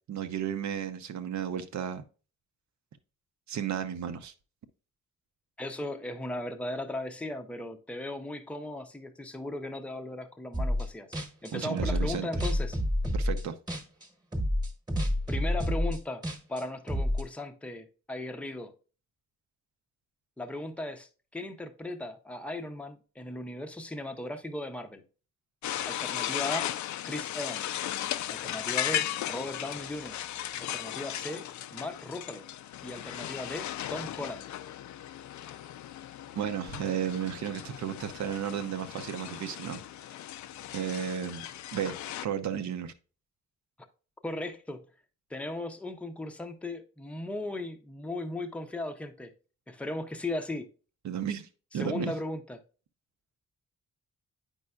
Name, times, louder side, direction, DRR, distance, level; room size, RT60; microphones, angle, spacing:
voice 1, 0.1-2.0 3.5-4.3 11.5-12.3 13.1-13.6 36.4-39.8 40.7-41.5 41.7-41.9 42.2-42.9 51.0-51.5 51.7-52.1, right 9 dB, 70° right, 0.7 m, -33 dB
voice 2, 5.6-12.8 15.3-16.2 16.5-18.7 20.4-25.0 25.9-26.7 27.1-27.8 28.3-30.2 30.6-31.4 31.7-32.4 32.8-34.5 44.2-44.8 45.3-49.3 49.7-50.7 51.7-52.6, left 2 dB, 5° left, 0.6 m, -37 dB
sound 1, 10.5-10.9 11.1-14.1 14.3-17.2, left 1 dB, 15° right, 1.2 m, -29 dB
sound 2, 25.6-42.3, left 12 dB, 75° left, 0.4 m, -36 dB
8.6 x 5.4 x 2.3 m
wide cardioid pair, 140°, 30 cm